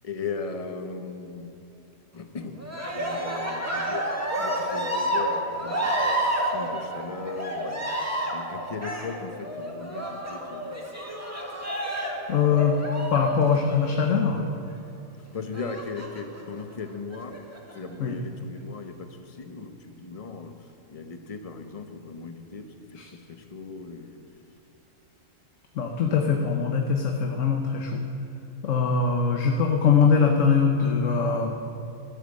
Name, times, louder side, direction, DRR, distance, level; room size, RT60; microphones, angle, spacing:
voice 1, 0.0-1.5 2.1-2.6 2.9-4.1 4.4-10.8 15.3-17.4 17.7-20.5 20.9-22.7 22.9-24.2, left 4 dB, 30° left, 7 dB, 1.0 m, -38 dB
Cheering, 2.6-14.3 15.5-16.4 17.1-17.8, right 1 dB, 10° right, 2.0 m, -30 dB
voice 2, 12.3-12.8 13.1-14.5 18.0-18.2 23.0-23.1 25.7-28.0 28.6-31.5, left 6 dB, 70° left, 3 dB, 1.3 m, -22 dB
14.5 x 12.0 x 7.7 m, 2.7 s
omnidirectional pair, 1.4 m